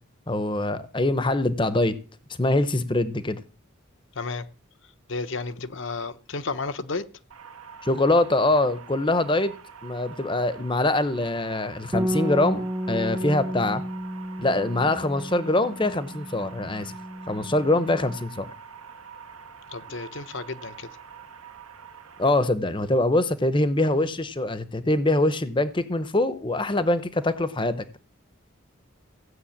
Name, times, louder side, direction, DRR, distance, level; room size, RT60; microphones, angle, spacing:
voice 1, 0.3-2.0 2.4-3.4 7.8-9.5 9.8-13.8 14.4-16.9 17.3-18.5 22.2-28.0, left 2 dB, 20° left, 0.8 m, -24 dB
voice 2, 5.1-7.0 19.7-20.9, left 3 dB, 60° left, 0.9 m, -32 dB
sound 1, 7.3-22.3, right 7 dB, 90° right, 1.7 m, -45 dB
Bass guitar, 11.9-18.2, equal, 15° right, 0.6 m, -32 dB
16.0 x 6.6 x 8.7 m
head